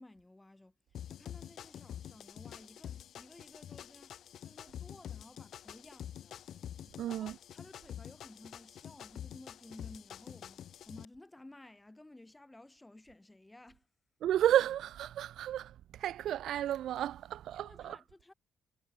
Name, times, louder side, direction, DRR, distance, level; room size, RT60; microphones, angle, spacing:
voice 1, 0.0-6.4 7.0-13.9 17.6-18.3, left 2 dB, 10° left, 5.6 m, -56 dB
sound 1, 0.9-11.0, left 10 dB, 70° left, 3.9 m, -47 dB
voice 2, 7.0-7.4 14.2-18.0, right 11 dB, 75° right, 0.3 m, -32 dB
cardioid pair, 90°, 0 cm